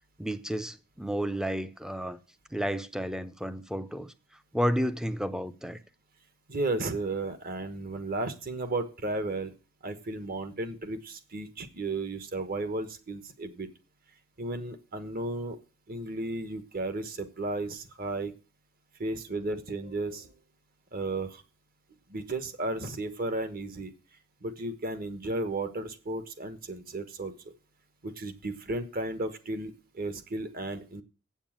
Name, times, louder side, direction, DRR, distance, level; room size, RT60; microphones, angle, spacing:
voice 1, 0.2-2.2 2.5-4.1 4.5-5.8, equal, 5° right, 0.6 m, -31 dB
voice 2, 6.5-9.5 9.8-13.7 14.4-15.6 15.9-18.3 19.0-20.3 20.9-21.4 22.1-23.9 24.4-27.3 28.0-31.0, right 2 dB, 45° right, 1.3 m, -34 dB
8.0 x 7.3 x 7.4 m
head